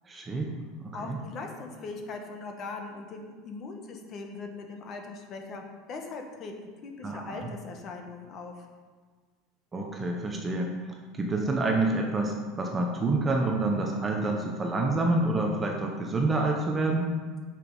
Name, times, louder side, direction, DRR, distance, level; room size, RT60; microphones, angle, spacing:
voice 1, 0.1-0.7 1.0-1.2 7.0-7.5 9.7-10.7 11.1-17.1, right 2 dB, 15° right, 1 dB, 0.7 m, -28 dB
voice 2, 0.9-8.6, left 3 dB, 30° left, 3 dB, 1.1 m, -40 dB
9.1 x 6.2 x 5.4 m, 1.5 s
cardioid pair, 180°, 0 cm